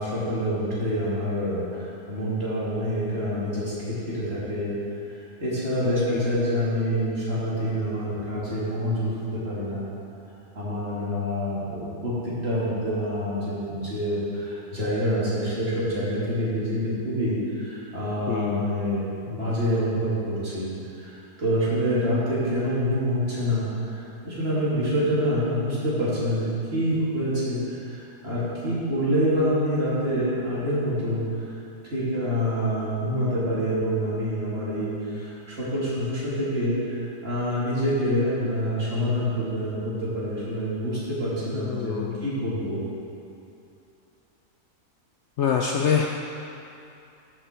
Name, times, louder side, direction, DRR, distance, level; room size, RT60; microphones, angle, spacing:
voice 1, 0.0-4.7 5.1-9.8 10.5-20.7 21.0-31.2 31.9-42.8, equal, 45° right, -9 dB, 2.8 m, -26 dB
voice 2, 5.9-6.3 18.3-18.7 41.5-42.2 45.4-46.1, left 7 dB, 65° left, 1 dB, 0.8 m, -26 dB
13.5 x 5.9 x 4.4 m, 2.7 s
omnidirectional pair, 1.5 m